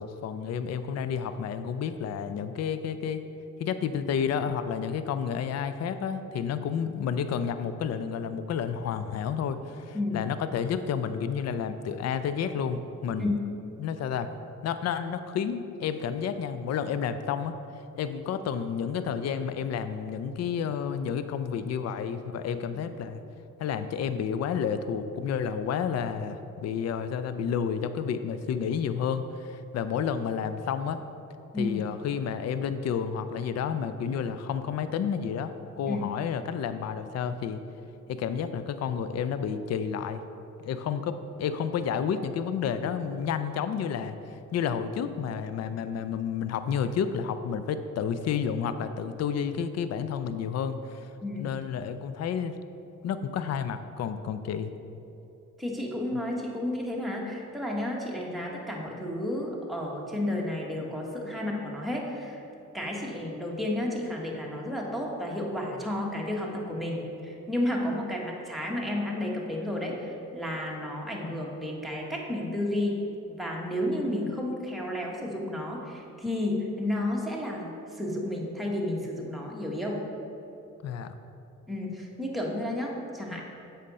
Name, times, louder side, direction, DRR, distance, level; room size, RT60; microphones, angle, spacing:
voice 1, 0.0-3.2 3.6-13.4 13.8-14.3 14.6-17.5 18.0-23.2 23.6-31.0 31.6-37.6 38.1-40.2 40.6-44.1 44.5-51.1 51.4-52.6 53.0-54.7 80.8-81.1, left 7 dB, 55° left, 11 dB, 0.5 m, -30 dB
voice 2, 55.6-62.4 62.7-73.0 73.3-80.0 81.7-83.4, left 1 dB, ahead, -3 dB, 1.4 m, -32 dB
7.5 x 5.2 x 4.1 m, 2.9 s
cardioid pair, 70°, 32 cm